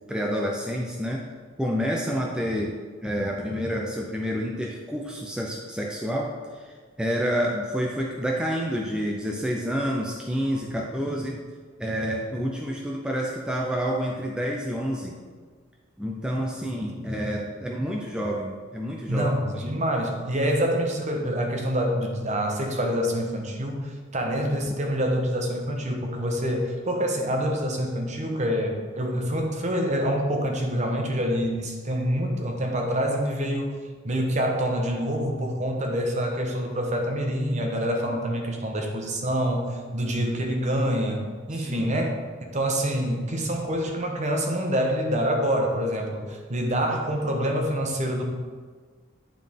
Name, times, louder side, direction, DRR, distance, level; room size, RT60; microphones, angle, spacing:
voice 1, 0.1-1.2 1.6-11.4 11.8-15.1 16.0-19.3 19.5-19.8 38.1-38.2 41.5-41.9, equal, 5° right, -2 dB, 0.5 m, -29 dB
voice 2, 19.1-33.8 34.0-41.2 41.5-42.2 42.5-48.2, equal, 35° right, 2 dB, 0.9 m, -26 dB
9.5 x 3.8 x 3.6 m, 1.6 s
head